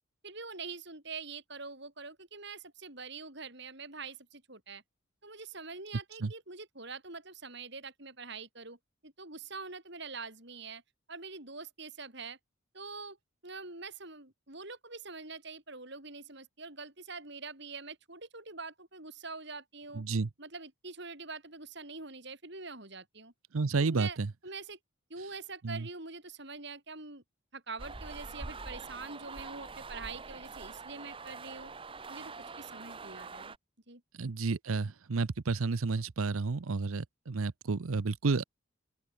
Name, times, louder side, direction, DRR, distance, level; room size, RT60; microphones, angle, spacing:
voice 1, 0.2-4.8 5.2-8.8 9.0-10.8 11.1-12.4 12.7-13.2 13.4-20.0 20.4-23.3 23.8-24.2 24.4-24.8 25.1-27.2 27.5-31.7 32.1-33.5 33.9-34.0, right 4 dB, 55° right, 5.3 m, -44 dB
voice 2, 19.9-20.3 23.5-24.3 25.6-25.9 34.2-38.4, right 4 dB, 80° right, 0.7 m, -31 dB
sound 1, 27.8-33.6, right 4 dB, 25° right, 0.8 m, -45 dB
open air
head